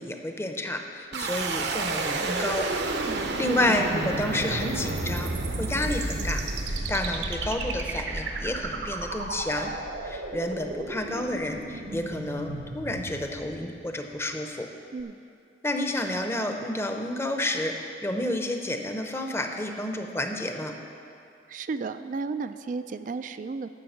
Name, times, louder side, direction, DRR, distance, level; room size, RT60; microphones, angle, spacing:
voice 1, 0.0-2.7 3.4-5.3 5.6-6.4 6.7-9.7 10.0-14.7 15.6-20.7, left 1 dB, 15° left, 4 dB, 0.7 m, -30 dB
sound 1, 1.1-14.1, right 2 dB, 70° right, 0.9 m, -31 dB
voice 2, 21.5-23.7, right 4 dB, 45° right, 10 dB, 0.3 m, -33 dB
11.5 x 6.3 x 7.9 m, 2.5 s
head